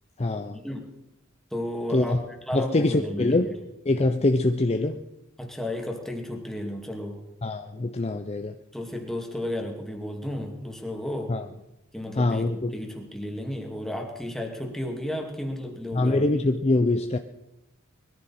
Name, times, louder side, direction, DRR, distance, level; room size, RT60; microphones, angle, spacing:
voice 1, 0.2-0.6 1.9-2.2 2.5-3.5 3.9-5.0 7.4-8.5 11.3-11.5 12.2-12.7 15.9-17.2, left 2 dB, 30° left, 7 dB, 0.6 m, -24 dB
voice 2, 1.5-3.5 5.4-7.2 8.7-11.3 11.9-16.3, left 1 dB, ahead, 1 dB, 2.3 m, -33 dB
21.0 x 14.0 x 4.3 m, 0.92 s
head